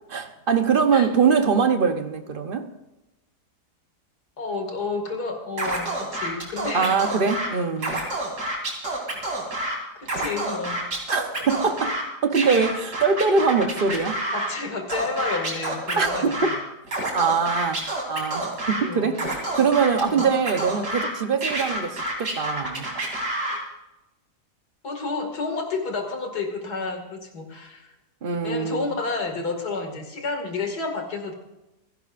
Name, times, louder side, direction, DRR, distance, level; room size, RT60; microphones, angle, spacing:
voice 1, 0.1-2.7 6.7-8.0 11.1-12.0 12.2-14.2 16.0-16.3 17.1-19.2 19.5-22.9 28.2-28.9, right 5 dB, 40° right, 8 dB, 1.0 m, -23 dB
voice 2, 4.4-7.0 9.5-9.6 9.9-10.8 14.3-16.5 18.8-19.3 20.0-20.3 24.8-27.9 28.4-31.3, left 3 dB, 75° left, 3 dB, 2.7 m, -30 dB
Scratching (performance technique), 5.6-7.5 7.8-9.8 10.0-12.0 12.3-14.5 14.9-16.6 16.9-18.8 19.1-21.1 21.4-23.6, right 1 dB, 75° right, 3.5 m, -28 dB
27.5 x 11.0 x 2.6 m, 0.96 s
omnidirectional pair, 1.7 m